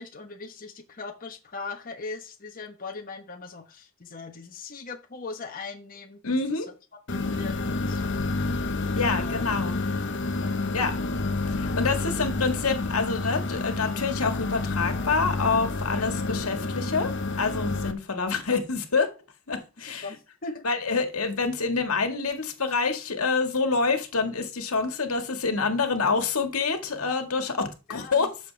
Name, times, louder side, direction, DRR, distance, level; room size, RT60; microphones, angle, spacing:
voice 1, 0.0-6.4 7.1-8.2 9.2-9.5 15.9-16.1 19.8-20.6 27.9-28.3, left 4 dB, 40° left, 1.2 m, -40 dB
voice 2, 6.2-6.7 9.0-9.8 10.7-11.0 11.5-17.1 17.4-19.1 19.5-20.0 20.6-27.6 27.9-28.3, left 4 dB, 90° left, 1.9 m, -27 dB
sound 1, 7.1-17.9, left 3 dB, 60° left, 1.1 m, -29 dB
12.5 x 6.9 x 3.4 m
head